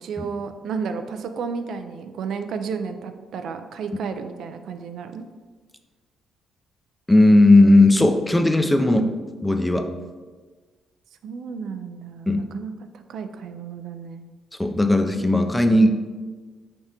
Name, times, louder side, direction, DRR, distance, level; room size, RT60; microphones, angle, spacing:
voice 1, 0.0-5.2 11.2-14.3, right 5 dB, 70° right, 8 dB, 0.3 m, -32 dB
voice 2, 7.1-9.1 9.4-9.9 12.3-12.4 14.6-15.9, left 2 dB, 10° left, 7 dB, 0.4 m, -16 dB
4.7 x 3.4 x 2.8 m, 1.4 s
cardioid pair, 90°, 0 cm